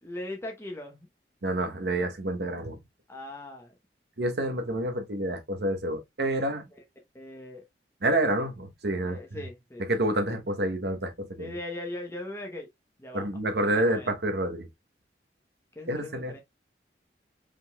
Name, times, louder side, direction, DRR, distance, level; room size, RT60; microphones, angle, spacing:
voice 1, 0.0-1.1 3.1-3.7 7.1-7.6 9.1-9.9 11.4-12.7 13.0-14.1 15.8-16.4, left 1 dB, 15° left, 0.8 m, -39 dB
voice 2, 1.4-2.8 4.2-6.6 8.0-9.4 9.9-11.6 13.1-14.7 15.9-16.3, right 1 dB, 70° right, 1.0 m, -28 dB
4.9 x 3.8 x 2.2 m
head